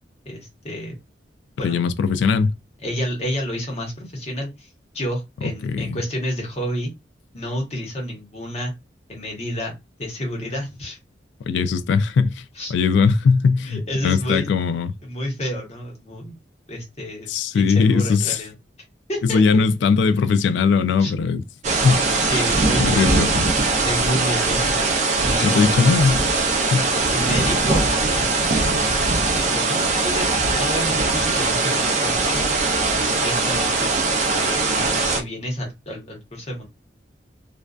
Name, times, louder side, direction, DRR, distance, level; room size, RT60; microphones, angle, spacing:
voice 1, 0.3-1.0 1.6-1.8 2.8-4.7 4.9-6.9 7.3-8.7 9.1-9.7 10.0-11.0 12.5-12.7 13.6-14.5 15.0-16.4 16.7-17.3 17.5-18.5 19.1-19.4 21.0-21.1 22.2-22.9 23.8-24.8 25.2-26.0 27.0-29.0 29.4-30.3 30.6-32.4 33.0-34.0 34.3-36.7, equal, 35° left, 0.9 m, -30 dB
voice 2, 1.6-2.5 5.6-6.0 11.5-12.4 12.7-14.9 17.3-18.4 19.2-21.4 21.8-22.3 22.8-23.5 25.4-26.2 26.7-26.8, left 5 dB, 75° left, 0.3 m, -19 dB
sound 1, 21.6-35.2, right 3 dB, 40° right, 0.4 m, -21 dB
2.5 x 2.2 x 2.3 m
head